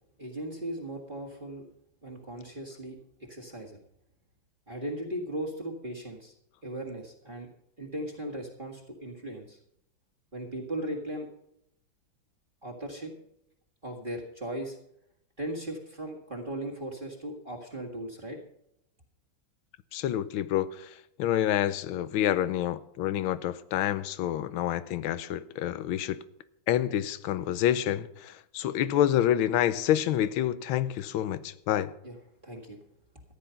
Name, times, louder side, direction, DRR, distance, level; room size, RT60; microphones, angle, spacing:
voice 1, 0.2-1.6 2.0-3.0 3.3-3.8 4.7-6.3 6.6-7.5 7.8-9.6 10.3-11.3 12.6-13.1 13.8-14.8 15.4-18.4 32.0-32.2 32.4-32.8, right 1 dB, 25° right, 1.9 m, -37 dB
voice 2, 19.9-20.7 21.2-26.2 26.7-31.9, left 11 dB, 90° left, 1.5 m, -28 dB
14.0 x 10.0 x 5.7 m
omnidirectional pair, 2.2 m